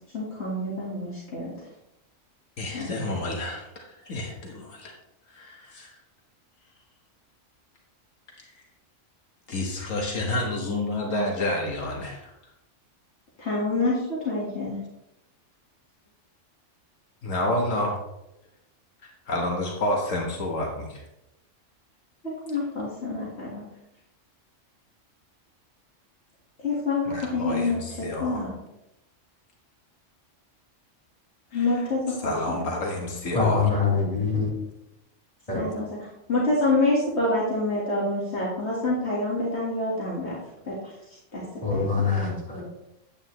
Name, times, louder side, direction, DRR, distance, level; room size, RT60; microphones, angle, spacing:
voice 1, 0.1-1.5 2.7-2.9 13.4-14.8 22.5-23.7 26.6-28.5 31.5-32.6 35.5-35.8 36.3-40.4 40.6-40.8 41.3-41.4 41.7-41.9, left 2 dB, 60° left, -6 dB, 2.2 m, -27 dB
voice 2, 2.6-4.9 5.3-6.0 8.4-8.5 9.5-12.3 17.2-18.0 19.0-21.0 27.1-28.5 31.5-31.7 32.2-33.6, left 1 dB, 85° left, 0 dB, 1.8 m, -29 dB
voice 3, 33.3-34.5 35.5-35.6 41.6-42.6, left 5 dB, 30° left, -7 dB, 3.9 m, -24 dB
9.7 x 8.7 x 3.2 m, 0.86 s
omnidirectional pair, 1.3 m